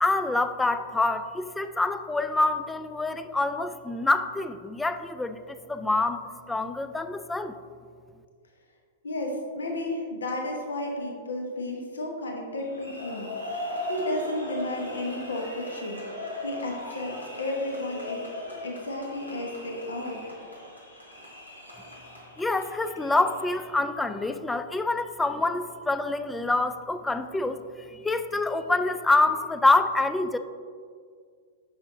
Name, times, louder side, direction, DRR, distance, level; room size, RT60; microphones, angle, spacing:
voice 1, 0.0-6.2 6.5-7.5 22.4-27.6 27.9-30.4, left 2 dB, 5° left, 10 dB, 0.3 m, -26 dB
voice 2, 9.0-13.3 13.5-16.0 16.4-18.2 18.6-20.2, left 1 dB, 70° left, 2 dB, 1.0 m, -33 dB
sound 1, 12.6-23.7, left 1 dB, 85° left, 1.5 m, -39 dB
9.4 x 6.1 x 2.7 m, 2.1 s
figure-of-eight pair, 100°, 0 cm